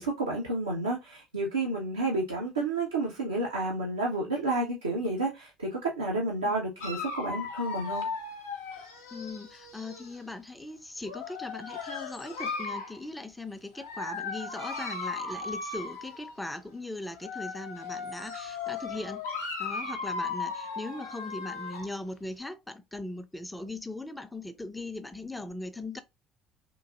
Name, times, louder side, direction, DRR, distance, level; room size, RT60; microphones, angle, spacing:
voice 1, 0.0-8.1, right 2 dB, 85° right, 0.6 m, -30 dB
Dog, 6.8-10.2 11.0-13.0 13.8-16.4 17.1-22.0, left 4 dB, 80° left, 0.6 m, -37 dB
voice 2, 9.1-19.3 19.6-26.0, left 2 dB, 10° left, 0.5 m, -39 dB
3.0 x 2.5 x 2.4 m
figure-of-eight pair, 60°, 0 cm